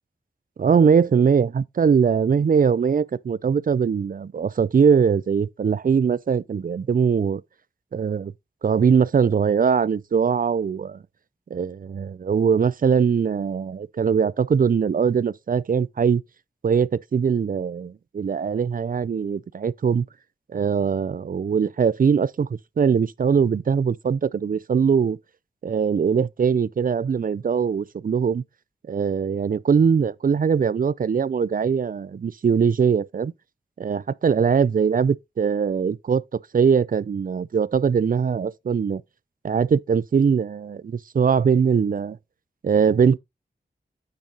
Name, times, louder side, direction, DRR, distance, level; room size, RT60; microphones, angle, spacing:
voice 1, 0.6-7.4 7.9-8.3 8.6-11.0 11.5-16.2 16.6-20.1 20.5-22.5 22.8-25.2 25.6-28.4 28.9-33.3 33.8-39.0 39.4-42.2 42.6-43.2, right 6 dB, 50° right, 0.4 m, -21 dB
8.9 x 5.2 x 2.9 m
wide cardioid pair, 55°, 18 cm